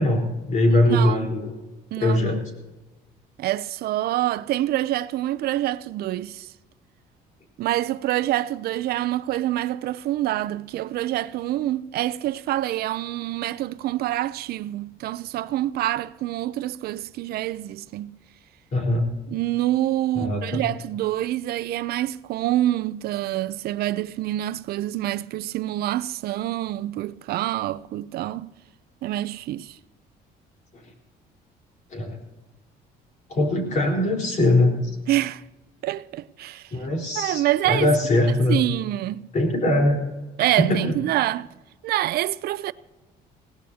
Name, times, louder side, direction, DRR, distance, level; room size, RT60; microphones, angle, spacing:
voice 1, 0.0-1.5 2.0-2.4 18.7-19.0 20.1-20.6 31.9-32.2 33.3-34.9 36.7-38.6 39.3-40.0 40.6-41.0, left 1 dB, 45° left, 4.0 m, -21 dB
voice 2, 0.7-1.3 1.9-2.4 3.4-6.5 7.6-18.2 19.3-28.5 29.0-29.8 35.1-35.4 35.8-36.7 37.2-37.9 38.5-39.3 40.4-41.5 41.8-42.7, right 14 dB, 70° right, 0.5 m, -26 dB
21.0 x 17.0 x 2.8 m
cardioid pair, 110°, 17 cm